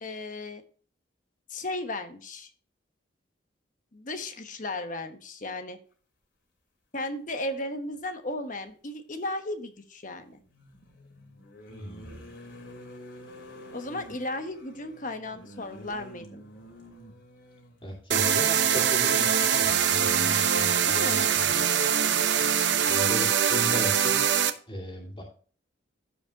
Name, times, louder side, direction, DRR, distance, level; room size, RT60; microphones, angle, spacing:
voice 1, 0.0-0.6 1.5-2.5 3.9-5.8 6.9-10.4 13.7-16.4 20.9-21.4, left 2 dB, 40° left, 8 dB, 1.1 m, -35 dB
sound 1, 8.0-8.1 10.3-17.9 19.1-19.2 19.6-19.7, equal, 70° left, 2.8 m, -48 dB
voice 2, 11.7-12.2 17.8-21.5 22.9-24.2 24.7-25.2, equal, 25° left, -1 dB, 2.5 m, -36 dB
sound 2, 18.1-24.5, right 8 dB, 65° right, 0.8 m, -23 dB
15.0 x 5.1 x 2.8 m, 0.42 s
head